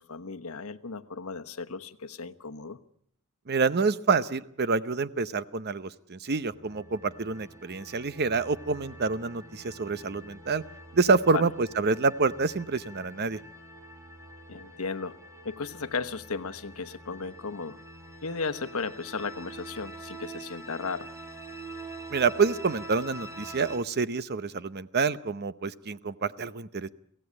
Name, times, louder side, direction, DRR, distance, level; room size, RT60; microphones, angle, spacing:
voice 1, 0.0-2.8 11.3-11.4 14.5-15.2 15.4-17.8 18.2-21.1, left 4 dB, 85° left, 9 dB, 1.1 m, -35 dB
voice 2, 3.5-10.6 10.9-13.4 22.1-26.9, right 4 dB, 50° right, 14 dB, 0.8 m, -27 dB
sound 1, 6.4-23.8, right 1 dB, 15° right, 3.4 m, -45 dB
23.5 x 16.5 x 8.6 m, 0.70 s
head